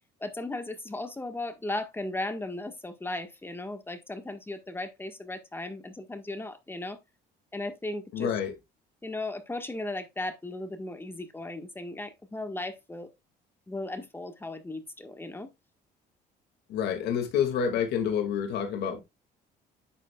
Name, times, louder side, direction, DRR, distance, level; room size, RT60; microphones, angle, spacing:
voice 1, 0.2-7.0 7.5-8.3 9.0-13.1 13.7-15.5, left 2 dB, 15° left, 1.5 m, -36 dB
voice 2, 8.1-8.5 16.7-19.0, left 8 dB, 75° left, 2.2 m, -28 dB
10.0 x 7.4 x 2.4 m
cardioid pair, 110°, 17 cm